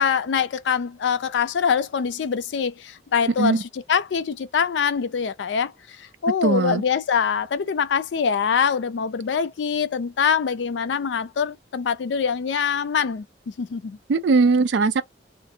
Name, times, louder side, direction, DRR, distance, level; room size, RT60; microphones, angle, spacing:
voice 1, 0.0-14.0, left 6 dB, 85° left, 0.4 m, -24 dB
voice 2, 6.4-6.8 14.1-15.0, right 4 dB, 80° right, 0.4 m, -19 dB
2.5 x 2.5 x 2.7 m
head